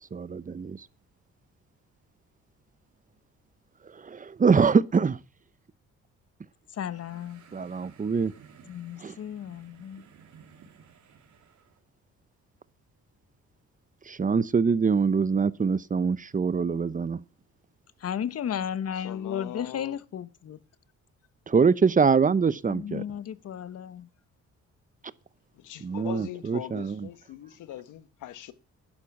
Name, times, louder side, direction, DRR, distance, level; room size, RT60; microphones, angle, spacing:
voice 1, 0.1-0.8 4.0-5.2 7.5-8.3 9.0-9.1 14.1-17.2 21.5-23.0 25.8-27.0, right 5 dB, 25° right, 0.8 m, -24 dB
voice 2, 6.8-7.4 8.7-10.0 18.0-20.6 22.7-24.1, left 9 dB, 55° left, 1.1 m, -34 dB
sound 1, 6.8-11.8, right 7 dB, 70° right, 3.4 m, -55 dB
voice 3, 18.9-20.0 25.5-28.5, left 13 dB, 85° left, 1.3 m, -41 dB
11.5 x 11.5 x 6.0 m
cardioid pair, 90°, 30 cm